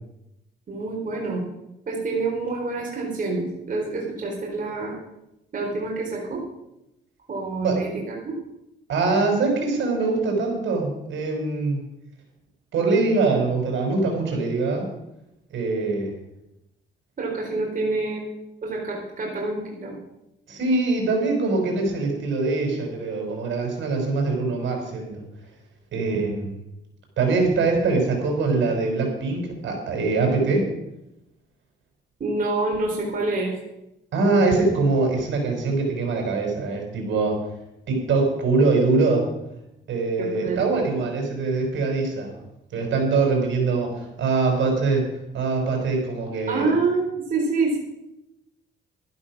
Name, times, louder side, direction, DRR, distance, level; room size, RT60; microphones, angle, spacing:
voice 1, 0.7-1.4 1.9-5.0 5.5-6.4 7.3-8.3 17.2-18.2 18.6-20.0 32.2-33.6 40.2-40.6 46.5-47.8, right 3 dB, 45° right, -2 dB, 4.1 m, -27 dB
voice 2, 8.9-11.8 12.7-14.9 15.5-16.1 20.5-25.2 25.9-26.6 27.2-30.6 34.1-37.4 37.9-39.3 39.9-42.3 42.7-45.0 45.3-46.7, right 3 dB, 70° right, 2 dB, 5.1 m, -23 dB
12.5 x 11.0 x 6.1 m, 0.87 s
cardioid pair, 90°, 20 cm